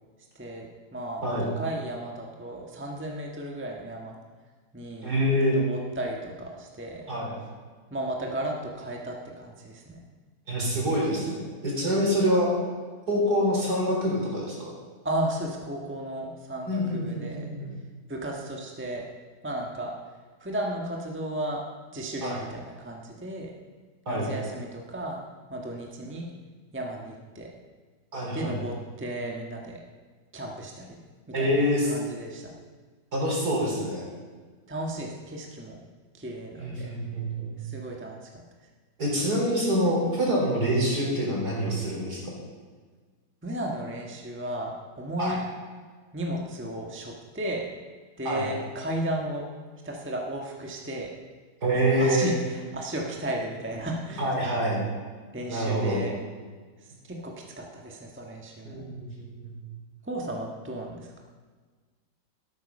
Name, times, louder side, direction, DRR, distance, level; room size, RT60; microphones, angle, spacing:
voice 1, 0.3-4.2 4.7-5.1 5.5-7.1 7.9-10.0 15.0-17.5 18.1-19.0 19.4-19.9 20.4-21.6 21.9-23.5 24.1-25.2 25.5-26.2 26.7-27.5 28.3-29.8 30.3-31.0 31.4-32.5 34.7-35.8 36.1-36.9 37.6-38.3 43.4-45.4 46.1-47.7 48.2-49.4 49.8-51.1 52.0-54.3 55.3-56.2 57.1-58.9 60.0-61.2, right 1 dB, 5° right, 0 dB, 1.4 m, -34 dB
voice 2, 5.0-5.6 7.1-7.3 10.5-12.5 13.1-14.7 16.7-17.7 22.2-22.4 24.1-24.3 28.1-28.6 31.3-31.9 33.1-34.1 36.6-37.6 39.0-42.3 45.2-45.4 48.2-48.5 51.6-52.3 54.2-54.8 55.5-56.0 58.6-59.6, equal, 60° right, -3 dB, 4.7 m, -26 dB
13.0 x 12.5 x 5.4 m, 1.5 s
omnidirectional pair, 2.0 m